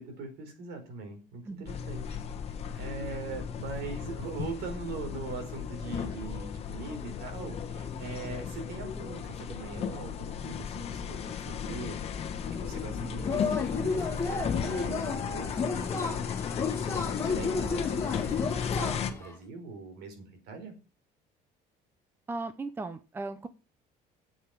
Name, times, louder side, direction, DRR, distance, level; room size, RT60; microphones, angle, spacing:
voice 1, 0.0-2.2 2.5-12.0 12.5-16.3 16.8-20.7, right 4 dB, 70° right, 4.7 m, -41 dB
sound 1, 1.7-19.1, left 7 dB, 35° left, 1.3 m, -35 dB
Yell / Cheering, 13.2-19.3, left 4 dB, 15° left, 2.4 m, -33 dB
voice 2, 22.3-23.5, right 3 dB, 15° right, 0.7 m, -37 dB
8.3 x 7.8 x 7.3 m
cardioid pair, 175°, 17 cm